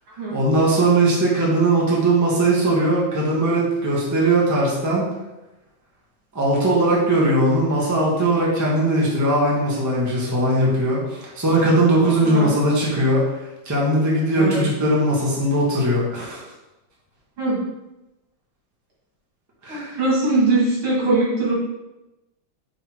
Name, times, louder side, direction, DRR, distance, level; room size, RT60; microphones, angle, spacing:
voice 1, 0.3-5.1 6.3-13.3 13.6-16.4 19.6-20.0, right 1 dB, 10° right, -5 dB, 1.2 m, -19 dB
voice 2, 12.2-12.5 14.4-14.6 17.4-17.6 19.7-21.5, right 2 dB, 75° right, -6 dB, 3.1 m, -21 dB
5.7 x 4.0 x 4.5 m, 0.98 s
omnidirectional pair, 2.3 m